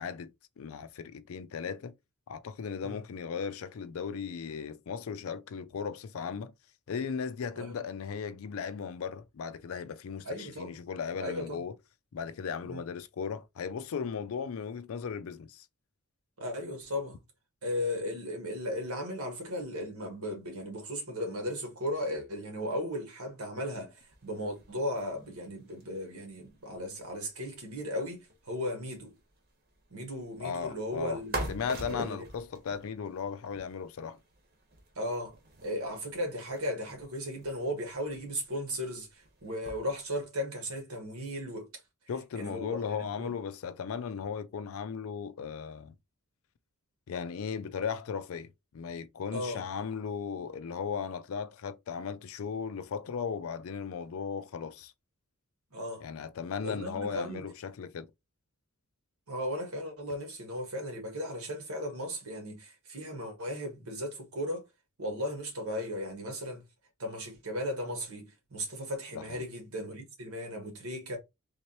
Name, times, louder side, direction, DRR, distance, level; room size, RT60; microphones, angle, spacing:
voice 1, 0.0-1.9 2.3-6.5 6.9-11.7 12.1-15.7 30.4-31.2 31.5-34.2 42.1-45.9 47.1-54.9 56.0-58.1 69.1-69.4, left 6 dB, 65° left, 0.4 m, -37 dB
voice 2, 10.2-10.7 11.2-11.6 12.6-12.8 16.4-17.2 17.6-29.2 29.9-32.2 34.9-35.3 35.6-39.1 39.4-41.7 42.3-43.3 49.3-49.6 55.7-56.0 56.6-57.4 59.3-64.6 65.0-66.6 67.0-71.2, left 1 dB, 80° right, 1.5 m, -36 dB
sound 1, 24.0-40.3, right 2 dB, 45° right, 1.1 m, -46 dB
3.5 x 3.1 x 2.9 m
head